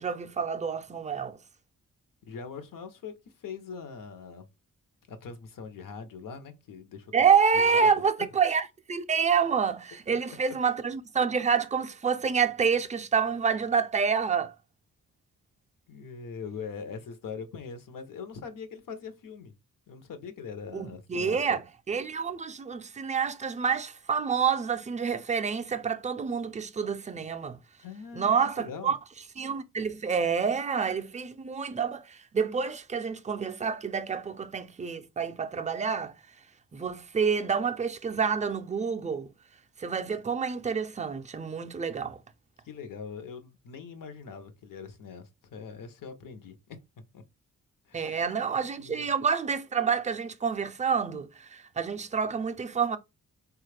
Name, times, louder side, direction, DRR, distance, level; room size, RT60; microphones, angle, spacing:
voice 1, 0.0-1.4 7.1-14.5 20.7-27.6 28.2-29.0 29.4-36.1 36.7-39.3 39.8-42.2 47.9-53.0, right 6 dB, 25° right, 0.3 m, -28 dB
voice 2, 2.3-4.5 5.1-7.3 7.6-7.9 15.9-19.5 19.9-21.6 27.8-28.9 42.6-46.8 47.1-47.2 47.9-48.4 48.8-49.1, left 5 dB, 70° left, 0.8 m, -42 dB
4.0 x 2.3 x 3.2 m
wide cardioid pair, 145°, 33 cm